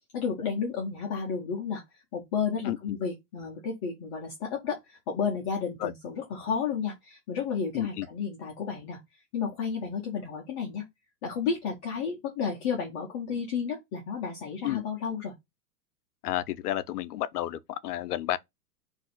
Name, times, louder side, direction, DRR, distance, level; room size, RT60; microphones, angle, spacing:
voice 1, 0.1-1.8 2.1-9.0 9.3-10.8 11.2-15.3, left 6 dB, 20° left, 0.4 m, -32 dB
voice 2, 2.6-3.0 5.8-5.9 7.7-8.1 14.6-14.8 16.2-18.4, left 13 dB, 80° left, 0.5 m, -31 dB
2.5 x 2.4 x 4.1 m
hypercardioid pair, 120°, 47 cm